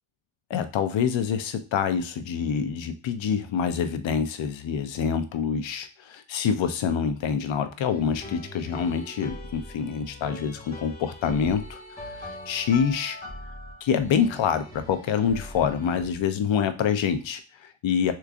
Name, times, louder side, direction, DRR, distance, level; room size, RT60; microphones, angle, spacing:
voice 1, 0.5-13.2 13.8-18.1, left 7 dB, 70° left, 9 dB, 0.6 m, -26 dB
sound 1, 7.9-16.2, left 1 dB, 20° left, 1.3 m, -41 dB
3.5 x 3.1 x 2.4 m, 0.34 s
cardioid pair, 75°, 47 cm